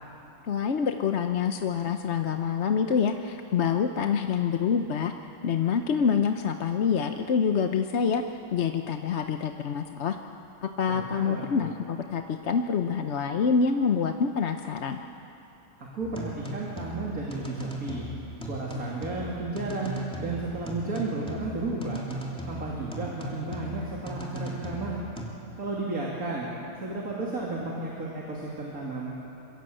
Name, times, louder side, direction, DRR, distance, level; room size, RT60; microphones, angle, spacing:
voice 1, 0.5-5.1 5.4-8.2 8.5-10.2 10.6-15.0, left 6 dB, 55° left, 6 dB, 1.0 m, -26 dB
voice 2, 10.9-11.7 15.8-18.0 18.4-22.0 22.5-25.0 25.6-26.5 26.8-29.2, right 2 dB, 70° right, -3 dB, 3.1 m, -33 dB
sound 1, 16.0-25.3, right 1 dB, 5° left, 2.8 m, -38 dB
26.0 x 22.5 x 7.8 m, 2.9 s
omnidirectional pair, 1.6 m